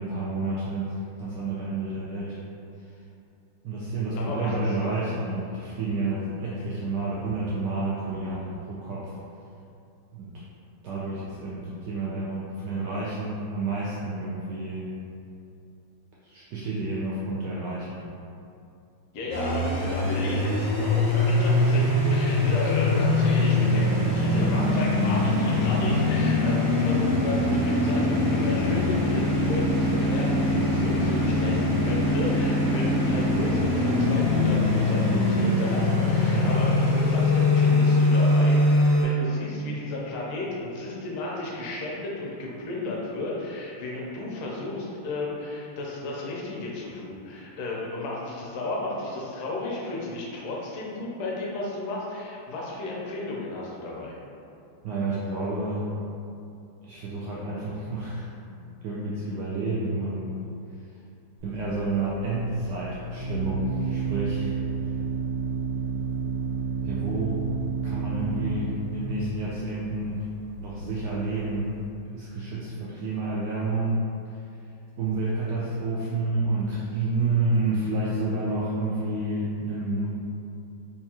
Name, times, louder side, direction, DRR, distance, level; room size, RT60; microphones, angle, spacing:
voice 1, 0.0-2.4 2.8-2.9 3.6-9.1 10.1-10.4 10.8-14.9 16.2-18.0 36.3-36.5 54.8-55.9 56.8-58.3 58.8-60.3 61.4-64.6 64.8-64.9 66.8-67.4 67.8-70.2 70.6-74.1 75.0-80.1, right 2 dB, 85° right, -7 dB, 0.9 m, -29 dB
voice 2, 4.2-4.7 19.1-54.2, left 2 dB, 85° left, -4 dB, 1.6 m, -33 dB
sound 1, 19.3-39.0, left 2 dB, 35° left, 0.6 m, -22 dB
Organ, 61.4-71.9, right 5 dB, 70° right, 1.7 m, -31 dB
4.4 x 2.3 x 2.8 m, 2.6 s
omnidirectional pair, 2.4 m